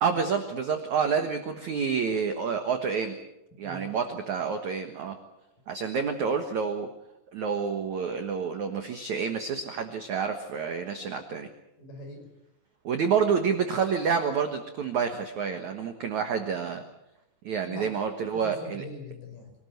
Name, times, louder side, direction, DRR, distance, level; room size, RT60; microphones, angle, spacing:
voice 1, 0.0-3.2 3.6-5.2 5.7-6.9 7.3-11.5 12.8-16.8 17.4-18.8, right 6 dB, 65° right, 6 dB, 1.9 m, -28 dB
voice 2, 3.6-3.9 11.8-12.3 17.6-17.9 18.3-19.5, left 2 dB, 45° left, 3 dB, 7.0 m, -42 dB
25.5 x 19.0 x 7.9 m, 0.88 s
omnidirectional pair, 5.5 m